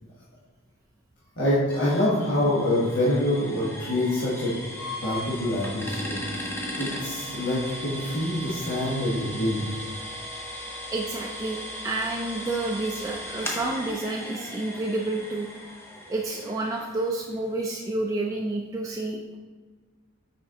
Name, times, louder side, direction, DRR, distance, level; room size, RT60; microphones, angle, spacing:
voice 1, 1.4-4.6 5.0-6.5 6.8-9.7, left 1 dB, 55° left, -8 dB, 1.2 m, -26 dB
sound 1, 1.7-17.4, left 1 dB, 10° left, 0.7 m, -37 dB
voice 2, 10.9-15.5 16.1-19.4, right 2 dB, 15° right, -2 dB, 0.3 m, -29 dB
6.0 x 4.3 x 3.7 m, 1.4 s
head